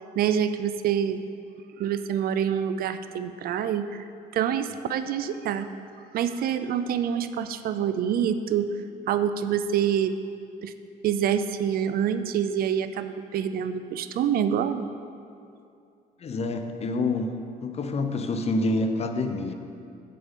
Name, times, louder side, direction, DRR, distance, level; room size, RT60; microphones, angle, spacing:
voice 1, 0.2-1.2 1.8-4.0 4.3-5.7 6.1-8.7 9.1-10.1 10.6-10.7 11.0-14.9, right 9 dB, 60° right, 11 dB, 0.5 m, -26 dB
voice 2, 16.2-17.3 17.6-19.5, left 2 dB, 40° left, 7 dB, 0.8 m, -27 dB
8.7 x 7.5 x 5.3 m, 2.5 s
cardioid pair, 110°, 17 cm